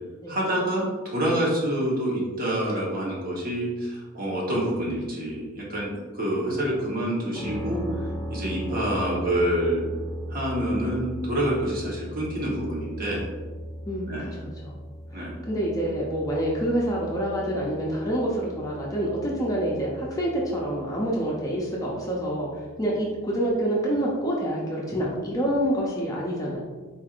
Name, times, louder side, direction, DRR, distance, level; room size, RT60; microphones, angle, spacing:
voice 1, 0.3-7.8 8.3-9.8 10.3-13.3 14.1-14.3 15.1-15.4, right 1 dB, 40° right, -4 dB, 1.1 m, -27 dB
sound 1, 7.3-23.2, equal, 15° right, 1.0 m, -38 dB
voice 2, 13.9-14.7 15.1-26.6, right 1 dB, 15° left, -4 dB, 0.5 m, -27 dB
4.5 x 4.2 x 2.5 m, 1.4 s
head